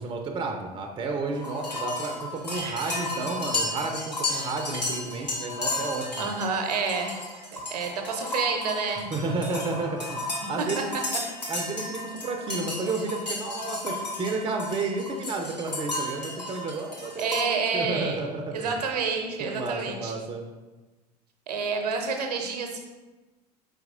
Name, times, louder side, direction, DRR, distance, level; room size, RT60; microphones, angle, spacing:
voice 1, 0.0-6.3 9.1-10.9 11.5-18.7 19.4-20.4, right 3 dB, 25° right, 3 dB, 0.5 m, -31 dB
sound 1, 1.3-17.4, left 2 dB, 90° left, 0.9 m, -33 dB
voice 2, 2.5-3.2 4.3-4.5 6.2-7.1 7.5-9.1 10.6-10.8 17.2-18.2 18.5-20.1 21.5-22.8, right 5 dB, 75° right, 4 dB, 0.7 m, -29 dB
4.6 x 4.1 x 2.5 m, 1.2 s
figure-of-eight pair, 70°, 21 cm